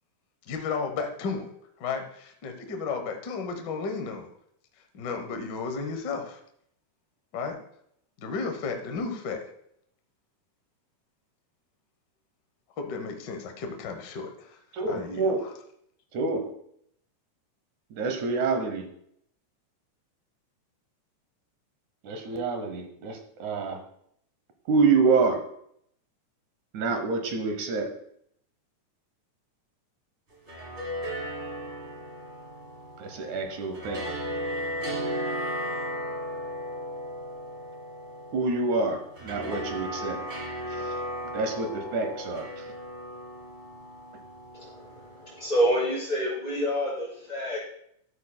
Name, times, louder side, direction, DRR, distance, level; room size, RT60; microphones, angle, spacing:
voice 1, 0.5-1.5 1.8-4.3 4.9-6.4 7.3-7.6 8.2-9.5 12.8-14.6 14.9-15.5, left 4 dB, 75° left, 4 dB, 1.0 m, -33 dB
voice 2, 14.7-15.4 16.1-16.4 17.9-18.8 22.0-23.8 24.7-25.4 26.7-27.9 33.0-34.0 38.3-40.2 40.7-40.9 41.3-42.6, right 4 dB, 70° right, 5 dB, 2.3 m, -27 dB
sound 1, 30.3-45.5, equal, 40° right, 0.7 m, -36 dB
voice 3, 44.5-47.6, equal, 15° left, -12 dB, 3.9 m, -28 dB
13.0 x 8.5 x 2.2 m, 0.69 s
omnidirectional pair, 3.6 m